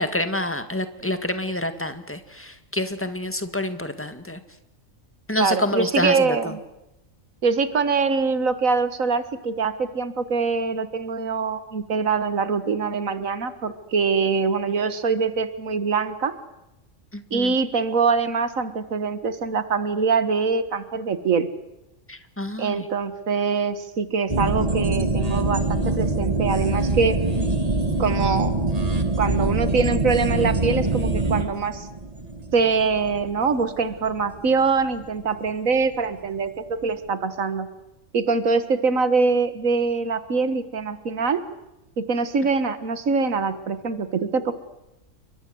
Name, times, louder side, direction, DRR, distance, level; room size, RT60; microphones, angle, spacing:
voice 1, 0.0-4.4 5.3-6.4 17.1-17.5 22.1-22.8, left 1 dB, 10° left, 9 dB, 1.9 m, -27 dB
voice 2, 5.4-6.6 7.4-16.3 17.3-21.5 22.6-27.2 28.0-28.6 29.2-31.9 32.5-37.7 38.1-41.4 42.0-44.5, right 4 dB, 90° right, 12 dB, 1.9 m, -23 dB
sound 1, 24.3-35.2 35.5-35.6, right 2 dB, 30° right, 2.0 m, -24 dB
29.5 x 23.5 x 7.9 m, 0.94 s
omnidirectional pair, 1.4 m